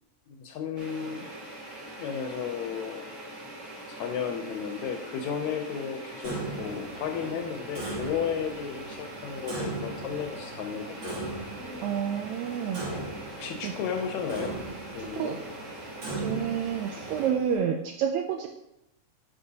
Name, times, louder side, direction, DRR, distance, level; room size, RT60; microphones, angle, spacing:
voice 1, 0.3-1.4 2.0-3.1 3.9-11.2 13.3-14.6 14.9-15.4, left 7 dB, 75° left, 4 dB, 1.9 m, -33 dB
sound 1, 0.8-17.3, right 1 dB, 40° right, 2.1 m, -43 dB
Clock, 6.2-17.6, right 2 dB, 65° right, 4.3 m, -39 dB
voice 2, 11.8-12.8 13.6-13.7 15.0-15.4 16.2-18.5, right 8 dB, 85° right, 5 dB, 1.6 m, -29 dB
9.9 x 5.4 x 2.8 m, 0.86 s
omnidirectional pair, 3.7 m